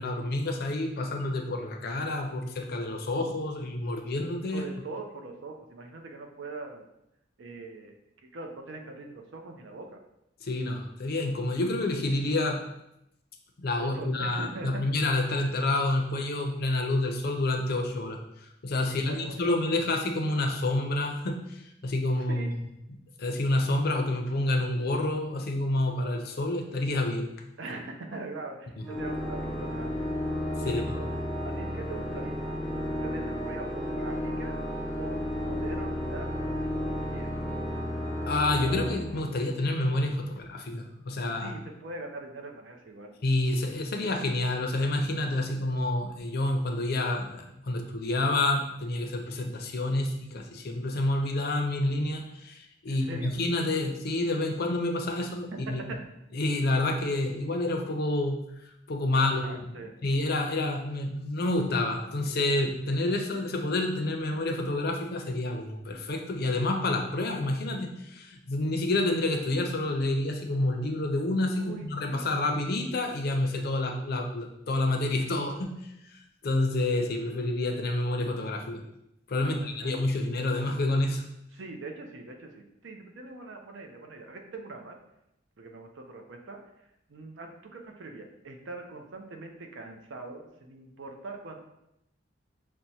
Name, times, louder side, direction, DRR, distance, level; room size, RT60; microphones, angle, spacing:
voice 1, 0.0-4.7 10.4-12.6 13.6-18.2 18.6-22.6 23.2-27.3 28.8-28.9 30.6-30.8 38.3-41.5 43.2-55.9 56.3-58.4 58.9-75.7 76.4-78.8 79.3-81.2, left 2 dB, 55° left, 4 dB, 0.5 m, -28 dB
voice 2, 4.5-6.8 7.4-7.9 8.3-10.0 13.8-14.8 19.0-19.5 22.2-22.6 27.6-30.2 30.6-31.0 31.4-34.6 35.0-37.4 41.4-43.1 52.9-53.3 55.7-56.0 59.4-59.9 71.6-72.3 79.4-80.0 81.5-85.0 85.6-86.6 87.1-91.6, right 3 dB, 75° right, 3 dB, 0.5 m, -42 dB
Organ, 28.8-39.8, left 1 dB, ahead, 0.6 m, -33 dB
5.9 x 2.1 x 2.7 m, 0.82 s
head